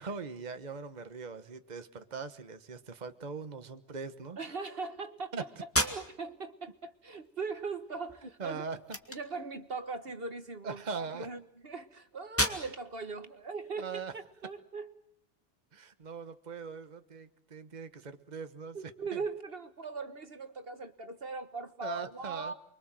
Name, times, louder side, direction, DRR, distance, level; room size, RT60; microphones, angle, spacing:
voice 1, 0.0-4.4 5.3-5.4 8.2-8.8 10.6-11.3 13.8-14.1 15.7-18.8 19.1-19.2 21.8-22.5, right 5 dB, 40° right, 9 dB, 1.4 m, -41 dB
voice 2, 4.4-5.3 5.8-8.6 9.1-14.9 18.7-22.5, right 4 dB, 55° right, 9 dB, 1.5 m, -40 dB
sound 1, 5.6-14.6, left 1 dB, 10° left, 2.1 m, -38 dB
29.0 x 23.5 x 7.6 m, 0.74 s
omnidirectional pair, 1.2 m